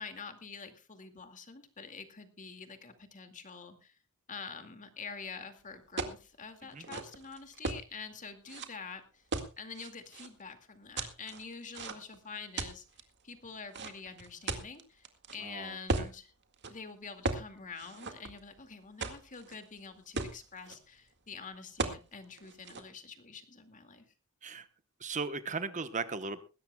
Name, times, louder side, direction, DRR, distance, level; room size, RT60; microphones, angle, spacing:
voice 1, 0.0-3.9 4.3-9.2 9.6-12.8 13.2-15.1 15.3-16.3 16.7-24.1, left 5 dB, 35° left, 7 dB, 2.2 m, -46 dB
sound 1, 6.0-6.2 6.7-7.8 8.5-8.7 9.3-10.3 11.0-12.2 12.6-13.0 13.7-15.4 15.9-16.1 16.5-16.7 17.2-17.5 17.8-18.6 19.0-19.6 19.9-20.0 20.2-20.8 21.8-22.0 22.4-22.8, right 3 dB, 55° right, 2.0 m, -36 dB
voice 2, 15.4-16.1 24.4-24.7 25.0-26.4, right 4 dB, 35° right, 11 dB, 1.0 m, -37 dB
20.5 x 17.0 x 2.3 m, 0.32 s
head